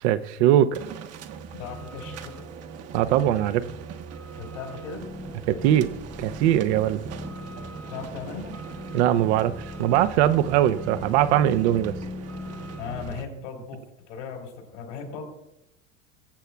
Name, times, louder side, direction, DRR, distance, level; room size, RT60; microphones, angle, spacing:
voice 1, 0.0-0.8 2.9-3.6 5.5-5.9 6.2-7.0 8.9-11.9, right 12 dB, 65° right, 0.8 m, -21 dB
sound 1, 0.7-13.3, right 6 dB, 40° right, 1.0 m, -40 dB
voice 2, 1.6-2.4 4.4-5.1 7.9-8.6 12.8-15.3, left 6 dB, 75° left, 3.7 m, -37 dB
sound 2, 5.0-13.2, left 2 dB, 5° left, 0.6 m, -40 dB
21.5 x 8.1 x 2.3 m
hypercardioid pair, 80°, 36 cm